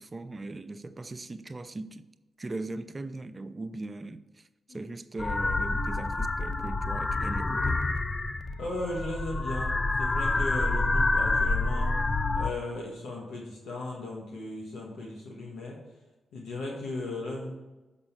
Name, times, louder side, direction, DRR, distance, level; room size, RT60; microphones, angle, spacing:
voice 1, 0.0-2.0 2.4-7.8, right 2 dB, 35° right, 0.7 m, -39 dB
sound 1, 5.2-12.5, left 2 dB, 35° left, 0.6 m, -28 dB
voice 2, 8.6-12.0 12.3-15.8 16.3-17.5, left 2 dB, 80° left, 1.5 m, -37 dB
7.0 x 5.3 x 6.7 m
supercardioid pair, 45°, 0 cm